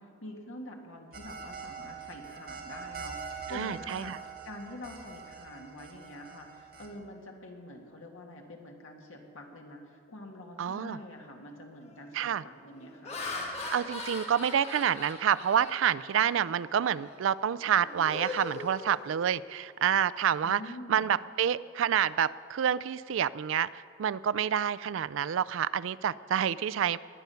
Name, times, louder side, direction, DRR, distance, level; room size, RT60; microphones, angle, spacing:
voice 1, 0.0-13.2 20.4-21.2, left 1 dB, 80° left, 1 dB, 2.0 m, -46 dB
sound 1, 1.1-6.9, right 6 dB, 45° right, 1.8 m, -43 dB
voice 2, 3.5-4.2 10.6-11.0 12.1-12.4 13.7-20.6 20.9-27.0, right 9 dB, 75° right, 18 dB, 0.3 m, -28 dB
Laughter, 10.9-11.2 11.8-12.1 12.7-16.5 17.0-17.2 17.6-19.5, left 2 dB, 30° left, 1.5 m, -41 dB
20.0 x 9.3 x 5.7 m, 2.3 s
head